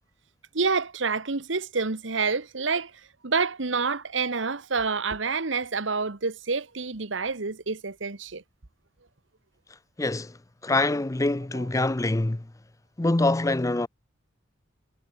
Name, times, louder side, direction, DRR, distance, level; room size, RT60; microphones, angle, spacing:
voice 1, 0.5-2.9 3.2-8.4, right 4 dB, 75° right, 1.4 m, -28 dB
voice 2, 10.0-10.4 10.6-12.4 13.0-13.9, left 2 dB, 15° left, 0.6 m, -24 dB
head